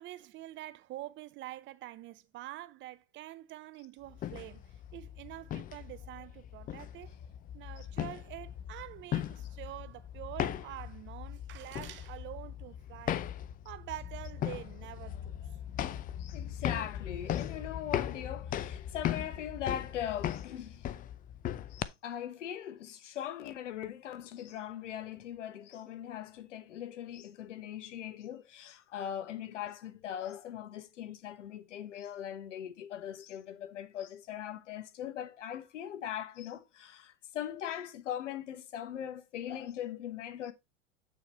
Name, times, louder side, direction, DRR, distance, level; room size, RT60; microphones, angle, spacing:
voice 1, 0.0-7.1 7.5-13.2 13.6-15.4, right 15 dB, 30° right, 0.6 m, -46 dB
sound 1, 4.1-21.8, left 11 dB, 25° left, 0.5 m, -38 dB
voice 2, 16.2-20.9 21.7-40.5, left 10 dB, 75° left, 1.2 m, -40 dB
8.1 x 4.6 x 4.3 m
hypercardioid pair, 100°, 37 cm